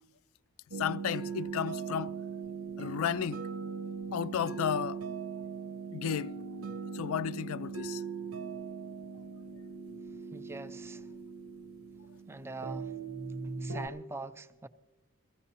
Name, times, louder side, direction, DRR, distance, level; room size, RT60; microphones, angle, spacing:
sound 1, 0.7-13.9, right 5 dB, 85° right, 1.0 m, -40 dB
voice 1, 0.8-2.1 2.8-3.4 4.1-5.0 5.9-6.4 6.9-8.0, left 8 dB, 75° left, 0.3 m, -33 dB
voice 2, 10.3-11.1 12.3-12.9 13.4-14.7, right 3 dB, 10° right, 0.3 m, -43 dB
22.0 x 15.5 x 2.9 m
head